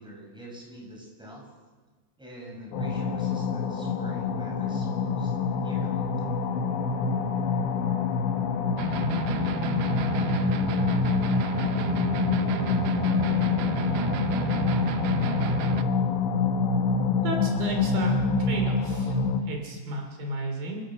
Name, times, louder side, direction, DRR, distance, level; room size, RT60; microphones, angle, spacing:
voice 1, 0.0-1.4 2.2-5.3 5.6-6.0, equal, ahead, -3 dB, 6.4 m, -44 dB
sound 1, 2.7-19.4, left 5 dB, 90° left, 3.8 m, -26 dB
sound 2, 8.8-15.8, right 7 dB, 90° right, 1.8 m, -31 dB
voice 2, 17.2-19.2 19.4-20.8, right 2 dB, 60° right, 3 dB, 4.9 m, -34 dB
28.0 x 16.0 x 6.4 m, 1.4 s
omnidirectional pair, 4.9 m